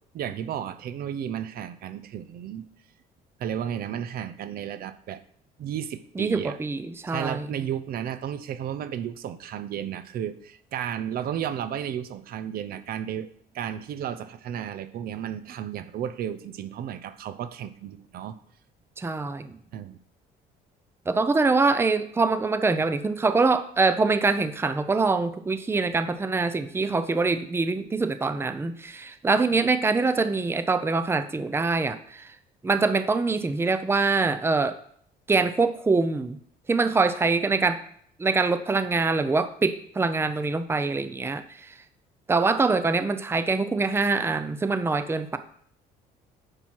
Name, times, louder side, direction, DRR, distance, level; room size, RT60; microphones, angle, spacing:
voice 1, 0.0-2.7 3.4-5.2 5.6-6.6 7.1-13.3 13.5-18.4 19.7-20.0, right 9 dB, 65° right, 12 dB, 0.7 m, -33 dB
voice 2, 6.2-7.6 19.0-19.6 21.1-32.3 32.6-34.7 35.3-36.4 36.7-37.8 38.2-41.7 42.3-45.4, right 3 dB, 15° right, 10 dB, 0.6 m, -24 dB
9.9 x 5.8 x 4.6 m, 0.62 s
cardioid pair, 110°, 17 cm